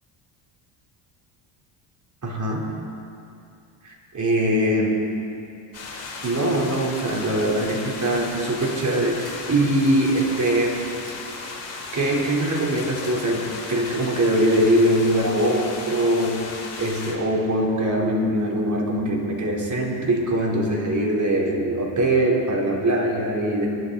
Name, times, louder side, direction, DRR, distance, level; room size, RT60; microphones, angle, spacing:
voice 1, 2.2-2.8 3.8-4.9 6.2-10.8 11.9-23.7, right 1 dB, 35° right, -2 dB, 4.1 m, -22 dB
sound 1, 5.7-17.1, left 3 dB, 30° left, 4.8 m, -35 dB
23.5 x 12.5 x 4.2 m, 2.6 s
supercardioid pair, 85°, 49 cm